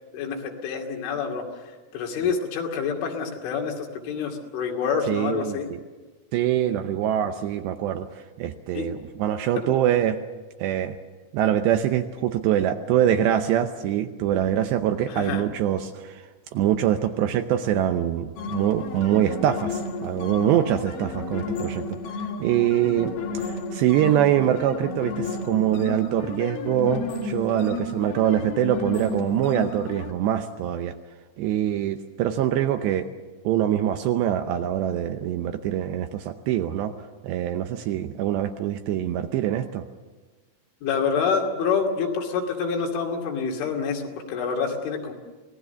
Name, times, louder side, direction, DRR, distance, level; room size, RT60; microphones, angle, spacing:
voice 1, 0.1-5.7 8.7-8.9 9.6-9.7 15.1-15.4 40.8-45.1, left 6 dB, 75° left, 1 dB, 4.8 m, -27 dB
voice 2, 5.1-5.6 6.3-10.2 10.6-11.0 11.3-16.3 16.5-22.0 22.4-30.9 31.4-33.1 33.4-36.9 37.2-39.8, right 11 dB, 75° right, 7 dB, 2.7 m, -24 dB
sound 1, 18.4-30.1, left 3 dB, 50° left, 3.2 m, -32 dB
26.5 x 19.0 x 6.9 m, 1.3 s
omnidirectional pair, 5.6 m